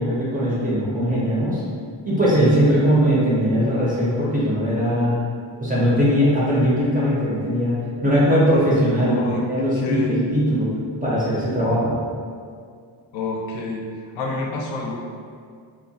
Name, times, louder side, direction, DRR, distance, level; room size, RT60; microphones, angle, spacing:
voice 1, 0.0-1.6 2.0-5.2 5.6-7.8 8.0-10.7 11.0-12.0, equal, 20° right, -8 dB, 0.4 m, -20 dB
voice 2, 9.1-9.4 9.8-10.2 13.1-13.8 14.1-15.0, left 3 dB, 70° left, -1 dB, 0.5 m, -28 dB
2.8 x 2.0 x 2.6 m, 2.2 s
cardioid pair, 155°, 47 cm